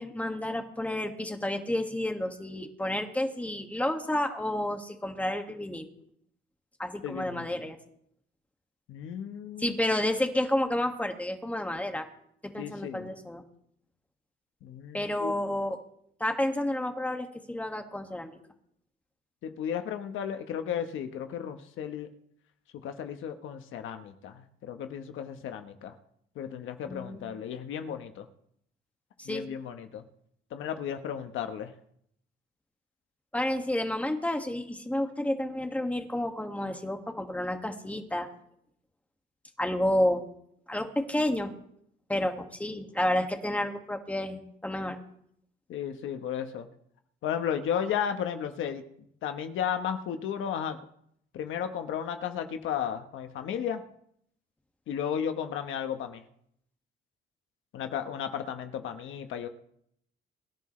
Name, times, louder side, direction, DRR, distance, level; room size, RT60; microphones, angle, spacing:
voice 1, 0.0-5.9 6.8-7.8 9.6-12.1 12.4-13.4 14.9-15.8 16.2-18.4 26.9-27.4 29.2-29.5 33.3-38.3 39.6-40.2 40.7-41.5 42.1-45.0, left 1 dB, 5° left, 4 dB, 2.0 m, -30 dB
voice 2, 7.0-7.5 8.9-9.8 12.6-13.1 14.6-15.3 19.4-22.1 22.8-25.9 26.3-28.3 29.2-30.0 30.5-31.7 45.7-46.7 47.2-48.8 49.2-50.8 51.3-53.8 54.9-56.2 57.7-59.5, left 8 dB, 85° left, 7 dB, 1.3 m, -34 dB
24.0 x 11.0 x 3.3 m, 0.70 s
cardioid pair, 90°, 20 cm